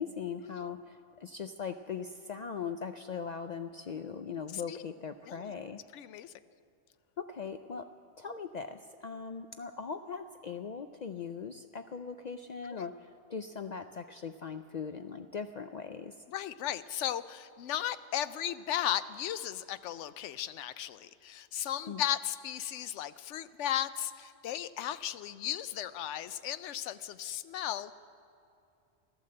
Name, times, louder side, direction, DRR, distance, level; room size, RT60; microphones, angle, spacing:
voice 1, 0.0-5.8 7.2-16.2 21.9-22.0, left 6 dB, 65° left, 8 dB, 0.4 m, -40 dB
voice 2, 5.9-6.3 12.6-12.8 16.3-27.9, left 11 dB, 80° left, 14 dB, 0.9 m, -36 dB
15.5 x 11.5 x 7.7 m, 2.5 s
omnidirectional pair, 1.2 m